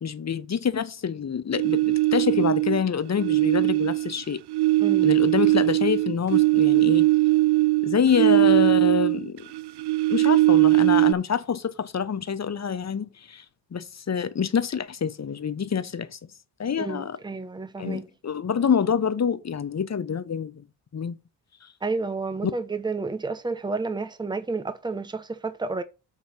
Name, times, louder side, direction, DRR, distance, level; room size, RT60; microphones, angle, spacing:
voice 1, 0.0-4.4 5.0-7.1 7.8-9.5 10.1-13.4 13.7-16.2 16.6-17.2 17.8-20.5 20.9-21.2 21.6-21.7, left 7 dB, 35° left, 1.0 m, -26 dB
sound 1, 1.5-2.8 3.2-9.3 9.5-11.1, right 19 dB, 65° right, 0.5 m, -20 dB
voice 2, 4.8-5.1 16.8-18.1 21.8-25.8, right 3 dB, 10° right, 1.0 m, -30 dB
8.3 x 3.3 x 6.5 m
cardioid pair, 75°, 44 cm